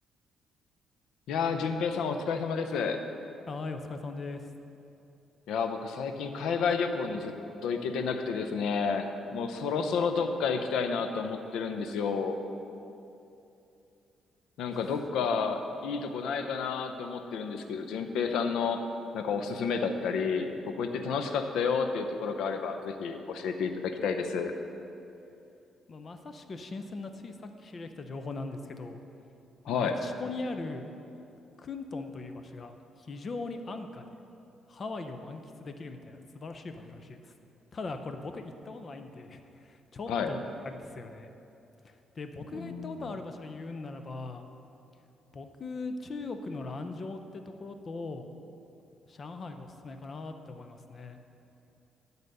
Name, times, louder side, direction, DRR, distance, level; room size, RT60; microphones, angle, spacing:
voice 1, 1.3-3.0 5.5-7.3 7.6-12.4 14.6-18.8 19.1-24.5 29.7-30.0 40.1-40.3 42.5-43.1, left 5 dB, 85° left, 7 dB, 0.6 m, -30 dB
voice 2, 3.5-4.5 25.9-29.0 29.7-30.8 31.6-34.0 34.7-37.3 37.7-41.3 41.8-44.4 45.3-48.3 49.1-51.2, left 3 dB, 40° left, 7 dB, 0.6 m, -40 dB
11.0 x 4.0 x 6.6 m, 2.8 s
cardioid pair, 90°, 0 cm